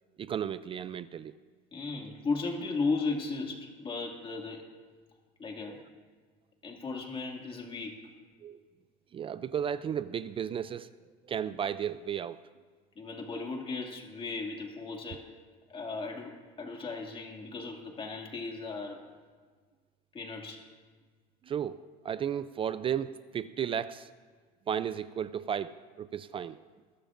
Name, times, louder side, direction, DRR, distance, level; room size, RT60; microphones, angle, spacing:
voice 1, 0.2-1.3 5.7-5.8 8.4-8.6 9.1-10.9 11.2-12.4 21.4-21.8 22.0-24.1 24.7-26.6, right 8 dB, 30° right, 14 dB, 0.4 m, -34 dB
voice 2, 1.7-4.6 5.4-5.8 6.6-8.1 13.0-15.2 15.7-19.0 20.1-20.7, left 3 dB, 30° left, 2 dB, 2.2 m, -36 dB
21.0 x 12.5 x 2.6 m, 1.5 s
supercardioid pair, 115°, 19 cm